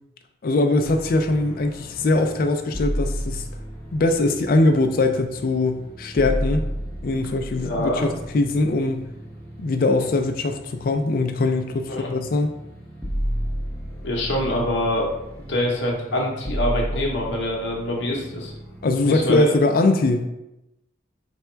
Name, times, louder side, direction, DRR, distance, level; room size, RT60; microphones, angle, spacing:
voice 1, 0.4-3.4 3.9-6.6 7.0-9.1 9.6-12.5 18.8-20.3, left 2 dB, 50° left, 6 dB, 0.3 m, -21 dB
sound 1, 0.8-19.4, equal, 10° left, 0.7 m, -33 dB
voice 2, 7.5-8.1 11.9-12.1 14.0-15.1 15.5-18.5 19.0-19.5, left 1 dB, 70° left, -2 dB, 0.8 m, -25 dB
3.4 x 2.2 x 4.3 m, 0.91 s
head